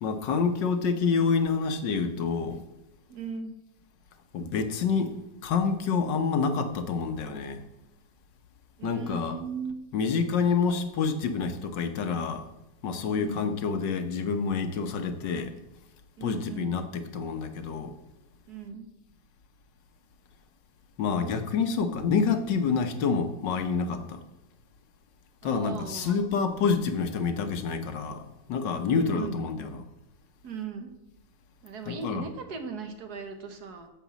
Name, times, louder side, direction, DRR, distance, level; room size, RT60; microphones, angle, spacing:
voice 1, 0.0-2.6 4.3-7.6 8.8-9.3 9.9-12.4 12.8-15.5 16.2-17.9 21.0-24.2 25.4-29.8 31.9-32.2, left 5 dB, 85° left, 8 dB, 1.7 m, -28 dB
voice 2, 3.1-3.6 8.8-9.8 13.1-13.6 16.2-16.8 18.5-18.9 25.4-26.2 28.9-29.4 30.4-30.9 31.6-33.9, right 5 dB, 65° right, 7 dB, 1.7 m, -38 dB
9.0 x 7.2 x 7.3 m, 0.92 s
omnidirectional pair, 1.9 m